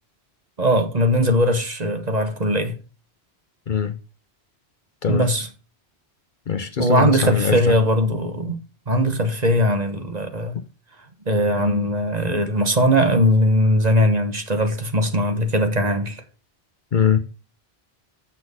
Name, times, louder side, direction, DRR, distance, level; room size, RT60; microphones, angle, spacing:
voice 1, 0.6-2.8 5.1-5.5 6.8-8.6 8.9-10.6 11.3-16.2, equal, 40° right, 1.3 m, -20 dB
voice 2, 6.5-7.7 16.9-17.2, left 7 dB, 50° left, 0.8 m, -21 dB
7.1 x 6.1 x 6.3 m
omnidirectional pair, 1.1 m